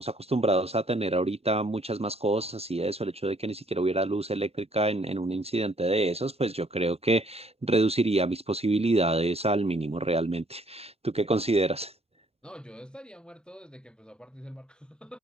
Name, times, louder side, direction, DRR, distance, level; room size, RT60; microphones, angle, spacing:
voice 1, 0.0-11.9, right 2 dB, 20° right, 0.5 m, -27 dB
voice 2, 12.4-15.2, equal, 5° left, 3.5 m, -46 dB
wide cardioid pair, 80°, 36 cm